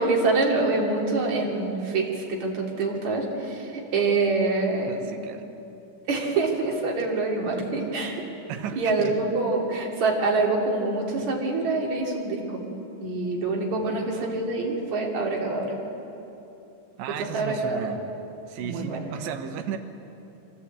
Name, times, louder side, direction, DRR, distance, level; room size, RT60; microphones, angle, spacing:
voice 1, 0.0-5.0 6.1-8.2 8.8-12.6 13.0-15.8 17.3-17.8 18.6-19.1, right 3 dB, 45° right, -2 dB, 3.9 m, -25 dB
voice 2, 4.8-5.4 8.5-9.2 13.7-14.3 17.0-18.0 18.5-19.8, right 8 dB, 90° right, 6 dB, 3.5 m, -35 dB
24.0 x 16.5 x 8.4 m, 2.9 s
omnidirectional pair, 4.9 m